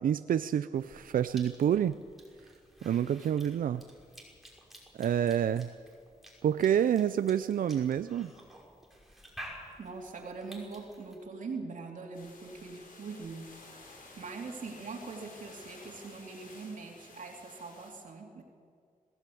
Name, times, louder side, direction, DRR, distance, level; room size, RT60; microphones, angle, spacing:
voice 1, 0.0-2.0 2.8-3.8 5.0-5.7 6.4-8.3, right 9 dB, 85° right, 12 dB, 0.5 m, -28 dB
Cough / Chewing mastication, 0.7-11.2, equal, ahead, 5.4 m, -52 dB
voice 2, 9.8-13.5 13.9-18.4, right 4 dB, 70° right, 1 dB, 2.8 m, -42 dB
sound 1, 12.1-17.9, left 3 dB, 80° left, 5.3 m, -53 dB
21.0 x 16.5 x 8.5 m, 2.1 s
wide cardioid pair, 95°, 14 cm